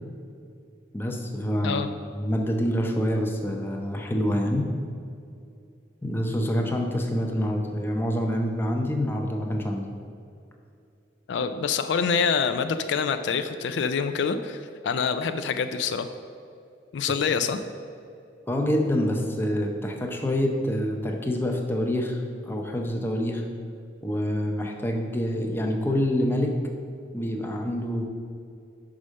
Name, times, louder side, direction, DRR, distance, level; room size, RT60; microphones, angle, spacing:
voice 1, 0.9-1.8 2.1-4.7 6.0-9.8 18.5-23.4 24.0-26.5 27.1-28.0, equal, 10° left, 2 dB, 0.6 m, -26 dB
voice 2, 11.3-16.1 16.9-17.6, left 6 dB, 70° left, 9 dB, 0.3 m, -26 dB
5.4 x 4.9 x 6.3 m, 2.5 s
head